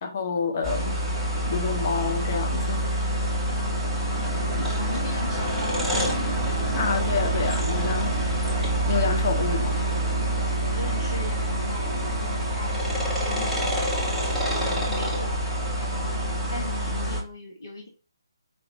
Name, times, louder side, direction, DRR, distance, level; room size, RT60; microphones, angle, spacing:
voice 1, 0.0-1.0 1.5-2.9 6.8-8.1 8.9-9.8, left 5 dB, 35° left, 0.8 m, -28 dB
sound 1, 0.6-17.2, right 1 dB, ahead, 1.0 m, -26 dB
voice 2, 4.7-6.1 10.7-13.8 14.5-15.4 15.8-16.2 16.5-17.9, left 2 dB, 50° left, 1.2 m, -38 dB
4.7 x 2.7 x 2.7 m
figure-of-eight pair, 145°, 2 cm